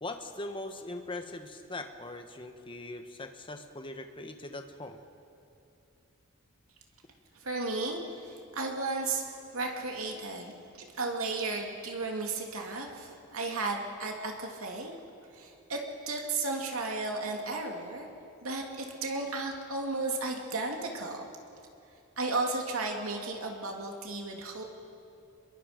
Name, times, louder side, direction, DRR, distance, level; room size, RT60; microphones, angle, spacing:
voice 1, 0.0-5.0, left 2 dB, 25° left, 6 dB, 1.2 m, -41 dB
voice 2, 7.3-10.5 10.9-14.9 15.3-18.1 18.4-21.3 22.2-24.6, right 3 dB, 80° right, 1 dB, 2.7 m, -34 dB
27.0 x 22.0 x 5.2 m, 2.6 s
head